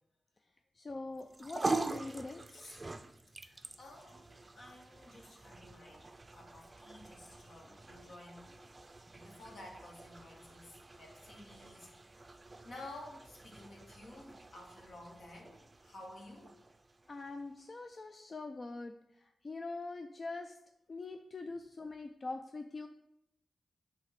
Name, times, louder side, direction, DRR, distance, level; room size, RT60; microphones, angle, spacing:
voice 1, 0.7-2.4 17.1-20.6 20.9-22.9, left 3 dB, 45° left, 6 dB, 0.4 m, -43 dB
sound 1, 1.2-17.7, right 3 dB, 30° right, 0.4 m, -45 dB
voice 2, 2.5-2.8 3.4-8.6 9.1-11.9 12.6-16.6, left 1 dB, 70° left, -1 dB, 1.8 m, -53 dB
7.7 x 2.8 x 5.8 m, 0.80 s
cardioid pair, 65°, 0 cm